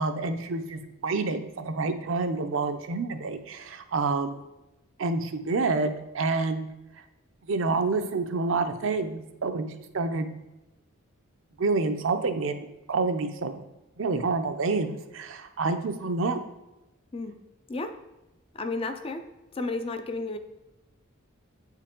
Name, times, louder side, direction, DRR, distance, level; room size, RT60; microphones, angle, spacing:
voice 1, 0.0-4.4 5.0-6.7 7.5-9.7 9.9-10.3 11.6-13.6 14.0-16.4, right 3 dB, 65° right, 8 dB, 0.5 m, -28 dB
voice 2, 18.5-19.2 19.5-20.4, left 3 dB, 25° left, 8 dB, 0.4 m, -32 dB
7.9 x 4.5 x 3.7 m, 0.97 s
head